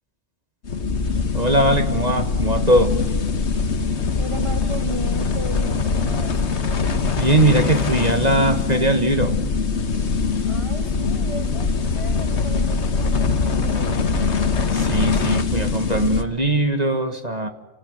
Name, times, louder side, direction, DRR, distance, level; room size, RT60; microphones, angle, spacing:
sound 1, 0.6-16.2, left 4 dB, 65° left, 1.6 m, -22 dB
voice 1, 1.3-2.9 7.2-9.3 14.7-17.5, right 1 dB, 35° right, 6 dB, 1.8 m, -20 dB
voice 2, 4.2-6.4 10.5-14.1, equal, 25° left, 6 dB, 1.6 m, -34 dB
27.5 x 19.0 x 9.6 m, 1.1 s
omnidirectional pair, 1.3 m